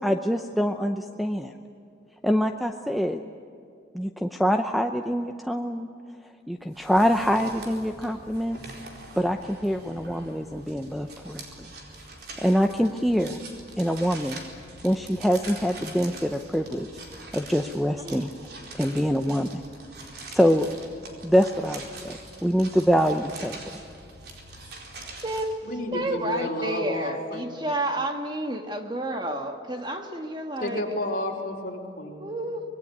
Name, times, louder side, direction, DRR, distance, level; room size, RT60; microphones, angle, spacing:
voice 1, 0.0-1.5 2.2-3.2 3.9-5.9 6.5-8.6 9.2-11.7 12.4-13.4 13.8-14.4 14.8-16.9 17.3-18.3 18.8-19.6 20.3-20.7 21.2-23.5, equal, ahead, 6 dB, 0.7 m, -25 dB
sound 1, 6.7-25.5, right 2 dB, 55° right, 4.4 m, -43 dB
voice 2, 18.0-18.3 25.2-25.5 25.9-30.8 32.2-32.6, right 1 dB, 25° right, 5 dB, 1.6 m, -30 dB
voice 3, 25.6-27.5 30.6-32.3, left 1 dB, 45° left, 0 dB, 4.6 m, -31 dB
25.5 x 21.0 x 9.6 m, 2.6 s
head